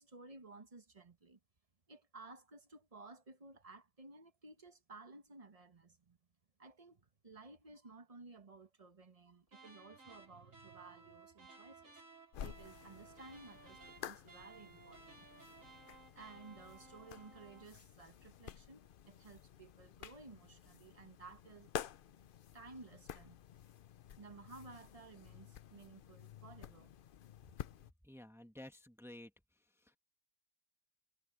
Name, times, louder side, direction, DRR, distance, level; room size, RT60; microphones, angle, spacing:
voice 1, 0.0-1.4 1.9-6.2 6.6-12.0 12.4-15.3 16.1-21.7 22.5-23.4 24.2-26.9, right 3 dB, 30° right, 1.3 m, -56 dB
sound 1, 9.5-17.7, right 4 dB, 80° right, 5.5 m, -59 dB
sound 2, 12.3-27.9, left 9 dB, 55° left, 0.6 m, -51 dB
voice 2, 28.0-29.3 29.8-30.0, left 1 dB, ahead, 1.6 m, -53 dB
omnidirectional pair, 1.4 m